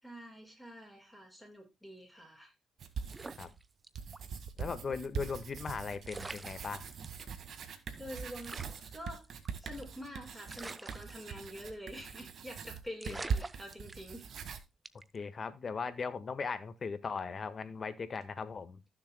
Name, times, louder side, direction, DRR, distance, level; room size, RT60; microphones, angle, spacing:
voice 1, 0.0-2.5 8.0-8.7 8.9-9.3 9.6-14.3, equal, 5° right, 6.7 m, -47 dB
sound 1, 2.8-3.6 4.0-14.6, right 6 dB, 60° right, 1.9 m, -42 dB
sound 2, 3.0-4.2 4.6-4.7 5.7-5.8 6.0-7.2 7.7-7.8 8.0-8.1 8.4-10.0 10.5-11.7 12.0-12.3 12.6-12.7 13.0-14.4 14.8-15.2, right 3 dB, 20° right, 0.8 m, -46 dB
voice 2, 4.6-6.8 13.1-13.2 15.1-18.8, left 5 dB, 40° left, 1.6 m, -38 dB
15.5 x 7.0 x 2.3 m
cardioid pair, 90°, 0 cm